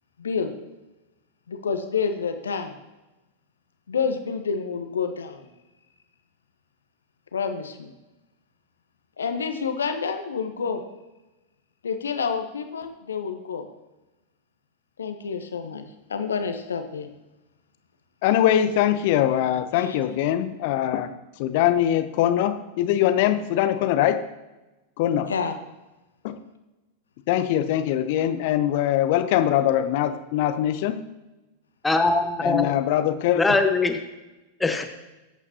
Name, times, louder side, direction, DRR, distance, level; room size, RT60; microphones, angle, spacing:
voice 1, 0.2-0.5 1.5-2.7 3.9-5.5 7.3-7.9 9.2-10.8 11.8-13.7 15.0-15.8 16.1-17.1 19.7-20.0 25.3-25.6, left 5 dB, 70° left, 7 dB, 1.2 m, -28 dB
voice 2, 18.2-21.1 21.4-24.2 25.0-25.3 26.2-26.4 27.3-31.0 32.4-33.4, left 11 dB, 50° left, 10 dB, 0.9 m, -22 dB
voice 3, 31.8-32.7 33.3-34.0 34.6-34.8, left 3 dB, 10° left, 6 dB, 1.3 m, -21 dB
20.5 x 8.5 x 2.9 m, 1.1 s
figure-of-eight pair, 90°, 0 cm